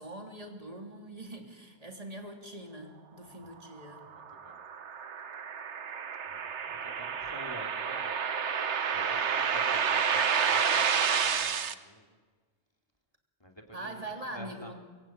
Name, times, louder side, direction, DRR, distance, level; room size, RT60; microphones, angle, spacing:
voice 1, 0.0-4.1 13.7-14.7, right 1 dB, 30° right, 4 dB, 3.2 m, -43 dB
sound 1, 3.9-11.7, right 7 dB, 80° right, 1.4 m, -30 dB
voice 2, 4.0-4.6 6.2-8.1 8.9-12.1 13.4-14.7, equal, 20° left, 3 dB, 3.0 m, -49 dB
25.0 x 22.5 x 8.8 m, 1.4 s
omnidirectional pair, 1.2 m